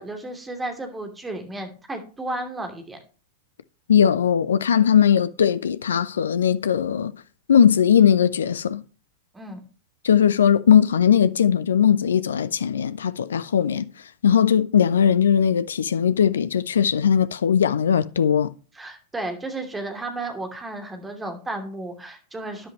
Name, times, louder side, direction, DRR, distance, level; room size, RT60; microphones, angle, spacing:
voice 1, 0.0-3.0 9.3-9.6 18.8-22.7, right 2 dB, 10° right, 2.7 m, -33 dB
voice 2, 3.9-7.1 7.5-8.8 10.0-13.9 14.2-18.5, left 8 dB, 65° left, 0.6 m, -19 dB
13.0 x 10.5 x 3.0 m
figure-of-eight pair, 90°, 0 cm